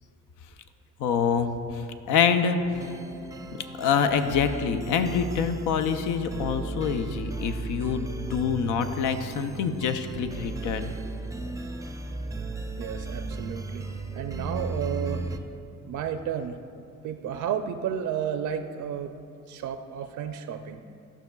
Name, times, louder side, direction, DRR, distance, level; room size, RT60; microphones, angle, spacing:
voice 1, 1.0-2.6 3.8-10.9, left 6 dB, 85° left, 9 dB, 0.5 m, -26 dB
sound 1, 2.7-15.4, right 3 dB, 10° right, 0.4 m, -35 dB
voice 2, 12.8-13.9 14.1-15.3 15.8-16.6 17.0-19.1 19.5-20.8, right 8 dB, 75° right, 7 dB, 0.4 m, -32 dB
13.0 x 5.8 x 2.3 m, 2.5 s
cardioid pair, 90°, 30 cm